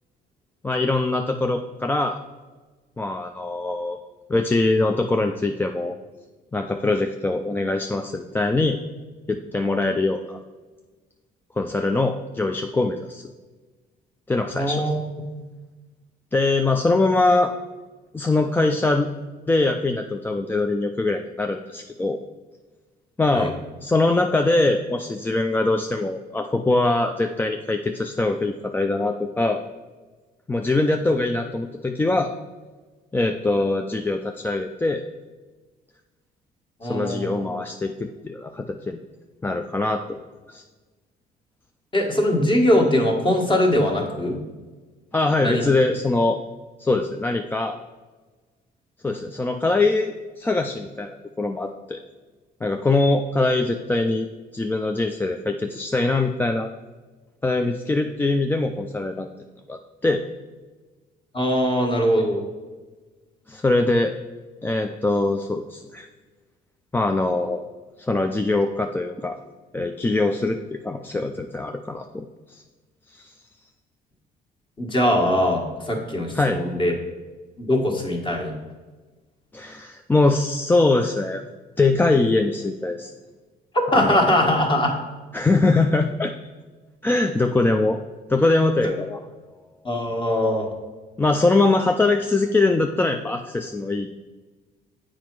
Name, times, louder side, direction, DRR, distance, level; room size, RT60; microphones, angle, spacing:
voice 1, 0.6-2.2 3.0-4.0 4.3-6.0 6.5-8.8 9.3-10.4 11.6-13.3 14.3-14.8 16.3-17.5 18.1-19.1 19.5-22.2 23.2-23.5 23.8-29.6 30.5-32.3 33.1-35.0 36.9-39.0 39.4-40.2 40.5-40.6 45.1-46.4 46.8-47.8 49.0-52.0 52.6-54.3 54.5-56.7 57.4-59.3 59.7-60.2 63.5-64.1 64.6-66.1 66.9-67.6 68.0-69.4 69.7-72.6 73.1-73.3 76.3-76.6 79.5-81.4 81.8-83.1 83.9-84.4 85.3-86.3 87.0-88.0 88.3-89.2 91.2-94.1, left 2 dB, 10° left, 5 dB, 0.4 m, -22 dB
voice 2, 14.5-15.0 15.3-15.4 23.3-23.5 36.8-37.4 41.9-44.4 45.4-45.6 61.3-62.4 74.8-76.9 77.6-78.5 83.9-84.9 88.8-88.9 89.8-90.7, left 1 dB, 30° left, 1 dB, 1.6 m, -21 dB
7.4 x 5.0 x 4.6 m, 1.3 s
cardioid pair, 110°, 17 cm